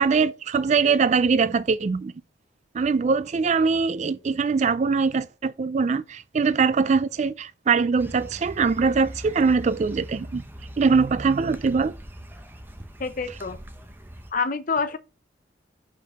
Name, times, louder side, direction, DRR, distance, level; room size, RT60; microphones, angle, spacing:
voice 1, 0.0-2.1 2.7-10.4 10.8-12.0, right 5 dB, 40° right, 0.3 m, -22 dB
sound 1, 8.0-14.3, equal, 10° right, 0.7 m, -41 dB
voice 2, 13.0-13.6 14.3-15.0, left 4 dB, 45° left, 0.7 m, -27 dB
5.5 x 4.6 x 5.8 m
head